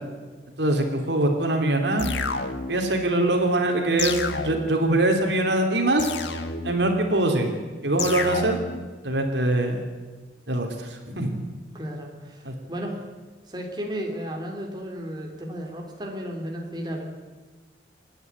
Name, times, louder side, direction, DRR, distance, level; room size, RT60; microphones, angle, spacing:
voice 1, 0.6-2.1 2.7-6.1 6.6-8.6 9.0-9.8 10.5-11.4 12.4-12.5, right 1 dB, 75° right, 3 dB, 3.0 m, -23 dB
sound 1, 2.0-2.9 4.0-4.9 6.0-6.9 8.0-8.9, left 4 dB, 85° left, 1.7 m, -30 dB
voice 2, 11.7-13.0 13.5-17.0, equal, 25° right, 1 dB, 3.2 m, -34 dB
28.0 x 9.9 x 9.5 m, 1.3 s
head